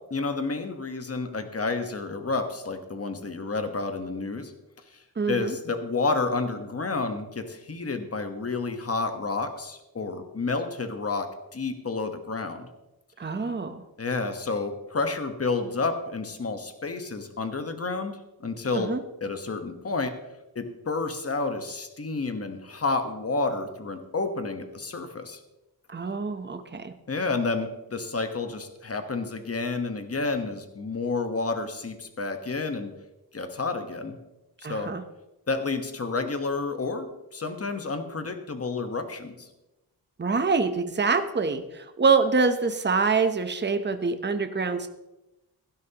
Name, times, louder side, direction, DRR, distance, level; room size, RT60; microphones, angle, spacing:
voice 1, 0.1-4.5 5.3-12.7 14.0-18.2 18.4-18.9 19.2-20.2 20.5-25.4 27.1-32.9 33.3-34.2 34.7-34.9 35.5-39.5, left 3 dB, 35° left, 7 dB, 1.3 m, -30 dB
voice 2, 5.2-5.6 13.2-13.8 18.7-19.0 25.9-26.9 34.6-35.0 40.2-44.9, right 4 dB, 25° right, 8 dB, 0.9 m, -25 dB
16.5 x 12.0 x 3.0 m, 0.96 s
wide cardioid pair, 130°, 40 cm